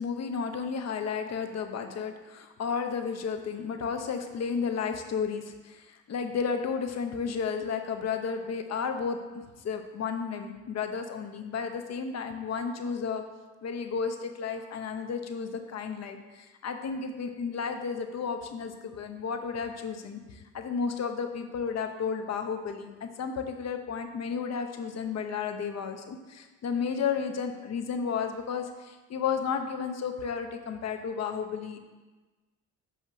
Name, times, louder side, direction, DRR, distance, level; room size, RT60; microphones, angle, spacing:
voice 1, 0.0-13.2 13.6-31.8, left 6 dB, 60° left, 6 dB, 0.8 m, -33 dB
8.3 x 2.9 x 6.0 m, 1.2 s
cardioid pair, 90°, 30 cm